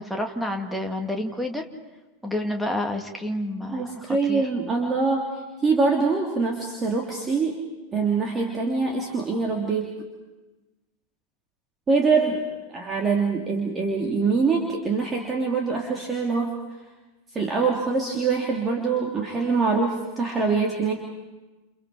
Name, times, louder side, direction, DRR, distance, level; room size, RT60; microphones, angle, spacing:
voice 1, 0.0-1.6 2.2-4.5, left 1 dB, ahead, 3 dB, 2.4 m, -29 dB
voice 2, 3.7-5.3 5.6-7.6 7.9-9.9 11.9-12.4 12.7-16.5 17.3-20.9, right 4 dB, 20° right, -1 dB, 3.1 m, -24 dB
29.5 x 29.5 x 5.0 m, 1.1 s
figure-of-eight pair, 90°, 0 cm